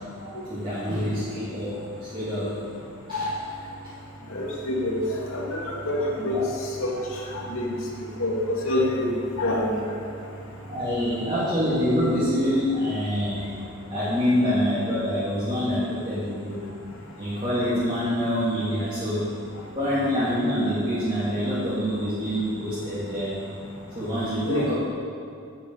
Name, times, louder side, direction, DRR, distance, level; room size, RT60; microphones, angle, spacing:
voice 1, 0.5-1.8 2.1-2.6 3.1-3.2 6.3-6.5 9.5-9.6 10.7-13.4 13.9-16.6 17.1-19.3 19.7-23.4 23.9-24.7, equal, 25° right, -11 dB, 2.9 m, -25 dB
voice 2, 4.3-5.0 5.3-6.4 6.8-6.9 7.5-7.7 8.2-9.1 9.4-9.8 24.5-24.6, left 1 dB, 70° left, -2 dB, 2.6 m, -26 dB
11.0 x 8.1 x 8.3 m, 2.4 s
head